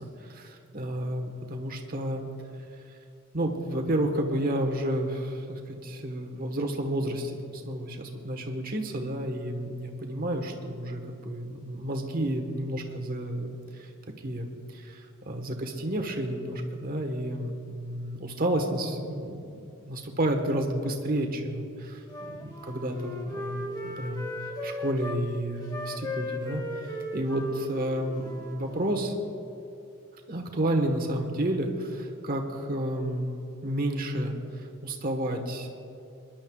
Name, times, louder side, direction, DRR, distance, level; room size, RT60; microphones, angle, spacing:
voice 1, 0.0-2.2 3.3-13.9 14.2-15.0 15.2-24.3 24.6-26.6 27.1-29.1 30.3-33.3 33.6-35.7, right 1 dB, 45° right, 3 dB, 1.3 m, -31 dB
Wind instrument woodwind instrument, 22.1-25.2 25.6-29.1, left 2 dB, 20° left, 1.3 m, -37 dB
25.5 x 11.5 x 2.4 m, 2.7 s
head